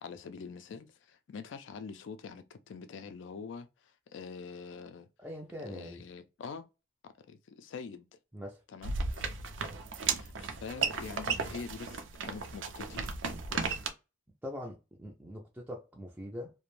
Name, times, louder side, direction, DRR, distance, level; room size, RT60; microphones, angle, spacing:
voice 1, 0.0-3.7 4.1-5.1 5.7-6.7 7.0-8.1 8.7-9.3 10.1-13.0 13.5-13.8, left 5 dB, 75° left, 0.3 m, -45 dB
voice 2, 5.2-6.0 8.3-8.6 14.4-16.5, left 1 dB, 5° right, 0.3 m, -42 dB
sound 1, 8.8-13.9, right 5 dB, 75° right, 0.5 m, -35 dB
2.5 x 2.1 x 3.0 m
head